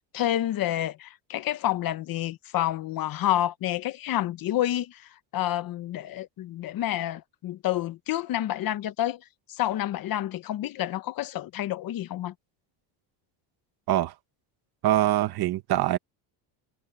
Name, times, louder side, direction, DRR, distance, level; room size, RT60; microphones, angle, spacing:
voice 1, 0.1-9.2 9.5-12.3, left 13 dB, 45° left, 1.0 m, -29 dB
voice 2, 14.8-16.0, right 13 dB, 50° right, 1.3 m, -23 dB
cardioid pair, 155°, 48 cm